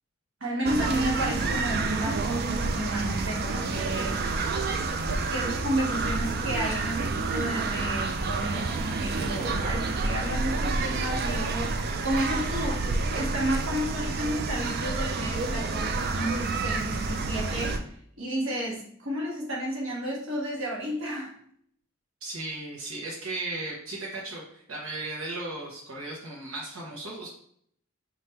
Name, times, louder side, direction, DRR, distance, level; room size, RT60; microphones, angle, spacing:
voice 1, 0.4-4.3 4.8-12.8 13.1-21.3, right 1 dB, 65° right, -3 dB, 1.1 m, -32 dB
sound 1, 0.6-17.8, right 3 dB, 45° right, 0.3 m, -29 dB
voice 2, 22.2-27.3, right 2 dB, 85° right, -3 dB, 0.9 m, -36 dB
3.1 x 2.5 x 4.4 m, 0.65 s
head